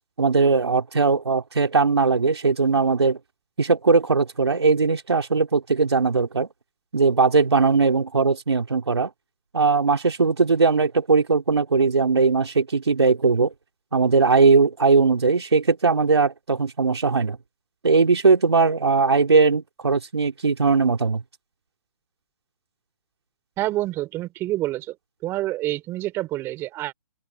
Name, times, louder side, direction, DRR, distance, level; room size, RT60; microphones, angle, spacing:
voice 1, 0.2-3.2 3.6-6.5 6.9-9.1 9.5-13.5 13.9-17.4 17.8-21.2, right 4 dB, 85° right, 3.3 m, -19 dB
voice 2, 23.6-24.9 25.2-26.9, right 16 dB, 20° right, 4.5 m, -27 dB
open air
hypercardioid pair, 150°, 14 cm